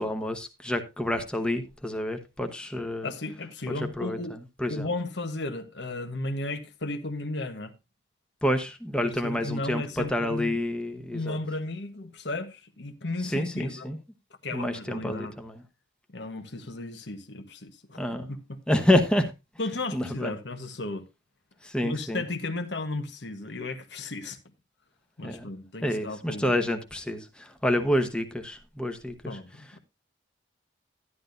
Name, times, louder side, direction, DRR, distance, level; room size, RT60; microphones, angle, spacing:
voice 1, 0.0-3.1 3.7-4.9 8.4-11.4 13.2-14.0 14.5-15.6 18.0-18.3 18.7-20.3 21.6-22.3 25.2-25.5 25.8-29.8, left 1 dB, 5° left, 1.1 m, -29 dB
voice 2, 3.0-4.3 4.7-7.7 9.0-10.6 11.1-13.9 14.4-15.3 16.1-18.0 19.6-21.1 21.8-24.4 25.2-26.5 29.2-29.8, left 2 dB, 65° left, 1.3 m, -34 dB
12.0 x 11.0 x 2.6 m
head